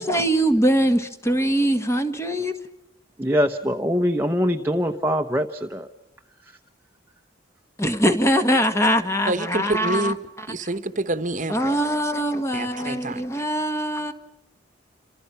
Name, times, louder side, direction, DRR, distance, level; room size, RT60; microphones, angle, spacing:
voice 1, 0.0-2.5 7.8-10.1 11.5-14.1, equal, 15° left, 8 dB, 1.5 m, -22 dB
voice 2, 3.2-5.9 6.4-6.5, equal, 10° right, 4 dB, 0.9 m, -23 dB
voice 3, 9.3-10.2 10.5-11.8 12.5-13.3, right 2 dB, 40° right, 12 dB, 1.2 m, -27 dB
29.0 x 27.0 x 5.7 m, 0.84 s
head